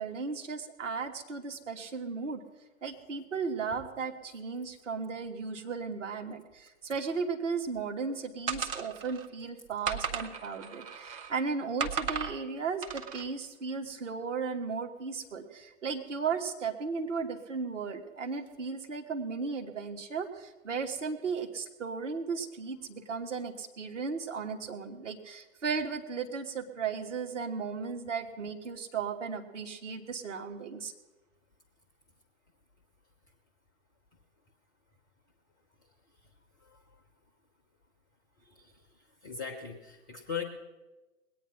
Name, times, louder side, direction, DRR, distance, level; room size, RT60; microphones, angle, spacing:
voice 1, 0.0-2.4 2.8-30.9, right 5 dB, 60° right, 5 dB, 1.5 m, -35 dB
sound 1, 8.5-9.3 9.8-11.3 11.8-12.4 12.8-13.2, right 6 dB, 25° right, 0.7 m, -35 dB
voice 2, 38.4-38.7 39.2-40.4, left 6 dB, 5° left, 1 dB, 0.4 m, -39 dB
20.5 x 8.9 x 5.9 m, 1.2 s
figure-of-eight pair, 120°, 42 cm